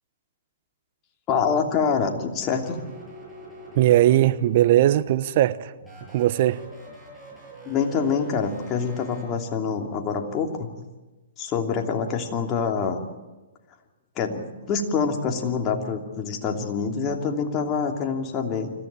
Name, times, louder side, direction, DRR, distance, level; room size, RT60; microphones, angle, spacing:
voice 1, 1.3-2.8 7.7-10.7 11.4-13.0 14.2-18.7, left 5 dB, 30° left, 2.8 m, -26 dB
sound 1, 2.4-4.5 5.8-9.2, equal, 10° right, 7.9 m, -44 dB
voice 2, 3.7-5.7 6.1-6.6, right 13 dB, 50° right, 1.0 m, -19 dB
26.0 x 14.5 x 8.9 m
hypercardioid pair, 130°, 0 cm